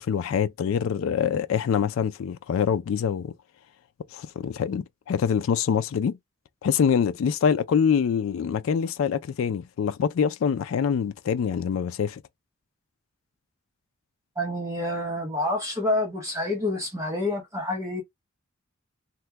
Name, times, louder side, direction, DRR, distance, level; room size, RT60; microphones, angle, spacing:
voice 1, 0.0-3.3 4.1-6.2 6.6-12.2, left 7 dB, 70° left, 0.3 m, -25 dB
voice 2, 14.4-18.0, left 1 dB, 15° right, 0.8 m, -28 dB
2.9 x 2.1 x 3.3 m
head